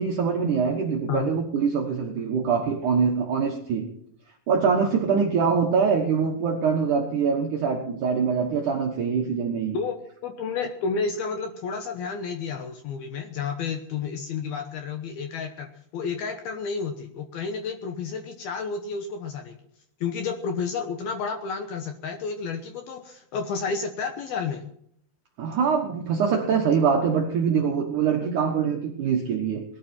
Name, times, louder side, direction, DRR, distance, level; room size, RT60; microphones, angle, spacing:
voice 1, 0.0-3.9 4.5-9.8 25.4-29.6, right 6 dB, 80° right, 2 dB, 1.8 m, -24 dB
voice 2, 10.2-19.5 20.0-24.7, left 5 dB, 70° left, 5 dB, 2.4 m, -31 dB
19.5 x 12.5 x 4.4 m, 0.68 s
omnidirectional pair, 5.7 m